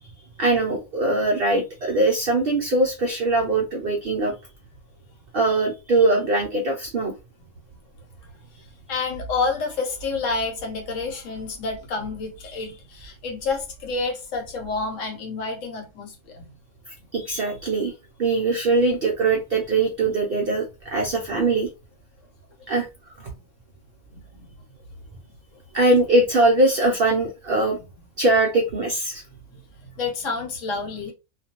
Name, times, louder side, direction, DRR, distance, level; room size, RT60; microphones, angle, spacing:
voice 1, 0.4-4.3 5.3-7.1 16.9-17.9 18.2-21.7 22.7-23.3 25.7-27.8 28.2-29.2, right 2 dB, 70° right, 0.5 m, -22 dB
voice 2, 8.9-16.5 23.2-23.4 24.1-24.5 29.5-31.1, left 4 dB, 65° left, 1.1 m, -29 dB
2.4 x 2.2 x 2.8 m
omnidirectional pair, 1.5 m